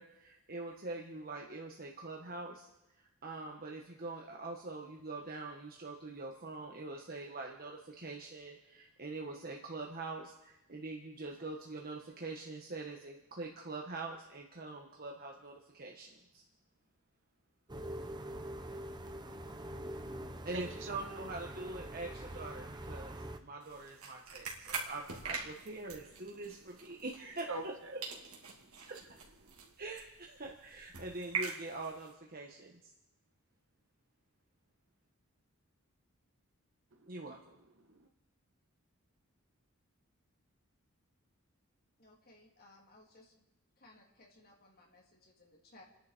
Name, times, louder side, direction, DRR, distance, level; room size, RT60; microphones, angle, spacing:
voice 1, 0.0-2.7 3.0-16.4 20.4-28.0 28.9-29.0 29.8-32.9 37.1-37.4, right 3 dB, 45° right, 0 dB, 1.5 m, -44 dB
sound 1, 17.7-23.4, right 1 dB, 20° right, 1.0 m, -44 dB
voice 2, 19.7-21.0 27.5-27.9 28.6-28.9 29.4-29.7 36.9-37.1 37.8-38.1, right 3 dB, 60° right, 5 dB, 1.7 m, -46 dB
sound 2, 23.6-27.8 28.0-32.1, right 5 dB, 85° right, 2.5 m, -44 dB
voice 3, 42.0-43.4 43.8-45.8, left 2 dB, 45° left, -1 dB, 3.4 m, -61 dB
29.5 x 10.5 x 4.5 m, 0.92 s
head